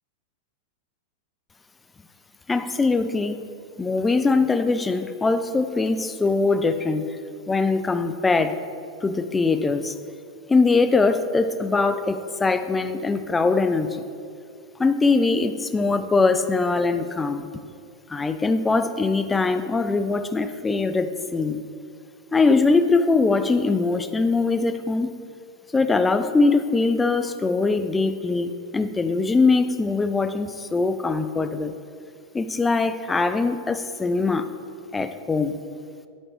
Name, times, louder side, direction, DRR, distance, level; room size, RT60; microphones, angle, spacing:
voice 1, 2.5-3.4 3.8-7.2 7.5-8.6 9.0-9.9 10.5-14.0 14.8-17.5 18.1-21.6 22.3-25.1 25.7-31.7 32.3-34.5 34.9-35.6, left 3 dB, 10° left, 10 dB, 0.3 m, -22 dB
10.0 x 4.3 x 3.2 m, 2.3 s
figure-of-eight pair, 90°, 0 cm